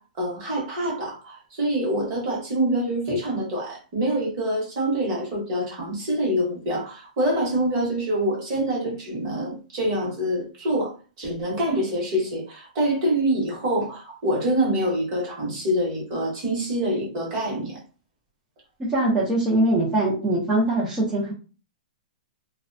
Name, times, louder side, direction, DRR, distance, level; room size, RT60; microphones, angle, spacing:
voice 1, 0.2-10.9 11.2-17.8, right 1 dB, 30° right, -2 dB, 0.9 m, -25 dB
voice 2, 18.8-21.3, right 1 dB, 10° right, -9 dB, 0.4 m, -22 dB
2.4 x 2.1 x 2.5 m, 0.35 s
hypercardioid pair, 180°, 5 cm